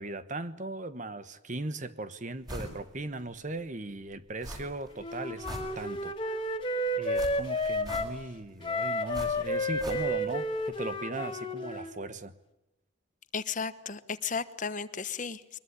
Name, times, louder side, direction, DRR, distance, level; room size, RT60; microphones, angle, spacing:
voice 1, 0.0-5.5 5.7-6.1 7.0-12.3, right 2 dB, 40° right, 1.3 m, -38 dB
sound 1, 2.5-2.8 3.2-3.3 4.4-4.9 5.2-6.2 7.1-8.4 9.1-10.4 10.6-10.7, equal, 20° right, 6.8 m, -42 dB
Wind instrument woodwind instrument, 5.0-8.1 8.6-11.9, left 1 dB, 25° left, 2.4 m, -31 dB
voice 2, 13.3-15.6, left 5 dB, 40° left, 1.1 m, -34 dB
23.0 x 21.5 x 9.8 m
head